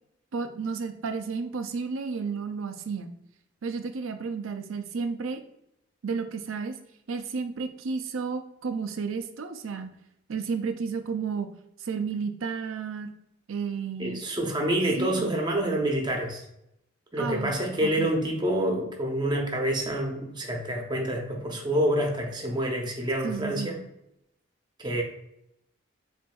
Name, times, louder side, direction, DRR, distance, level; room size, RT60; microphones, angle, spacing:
voice 1, 0.3-3.1 3.6-5.4 6.0-6.8 7.1-9.9 10.3-11.5 11.8-13.1 13.5-14.2 15.0-15.4 17.2-18.1 23.2-23.7, right 5 dB, 85° right, 8 dB, 0.5 m, -32 dB
voice 2, 14.0-16.4 17.1-23.8 24.8-25.0, right 1 dB, 20° right, 1 dB, 0.7 m, -27 dB
7.1 x 2.6 x 2.3 m, 0.80 s
head